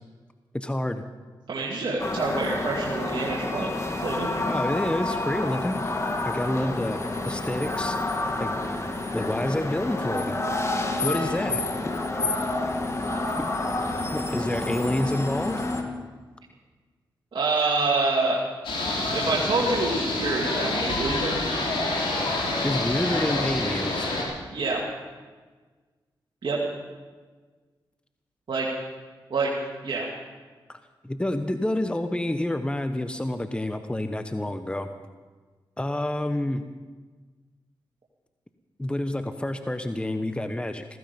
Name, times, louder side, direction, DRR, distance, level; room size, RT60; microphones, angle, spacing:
voice 1, 0.5-1.0 4.5-5.9 6.2-7.0 7.2-8.0 8.4-8.5 9.1-10.3 11.0-11.6 13.4-13.5 14.1-15.6 22.6-24.1 30.7-30.8 31.0-34.9 35.8-36.6 38.8-40.8, left 1 dB, 10° left, 8 dB, 1.0 m, -28 dB
voice 2, 1.5-3.7 4.0-4.3 17.3-18.4 19.1-21.4 24.5-24.8 26.4-26.6 28.5-28.7 29.3-29.5 29.8-30.1, right 3 dB, 65° right, -5 dB, 2.4 m, -26 dB
sound 1, 2.0-15.8, left 2 dB, 35° left, 2.1 m, -29 dB
sound 2, 18.6-24.2, left 2 dB, 80° left, 3.7 m, -27 dB
15.5 x 15.5 x 5.4 m, 1.4 s
cardioid pair, 50°, 9 cm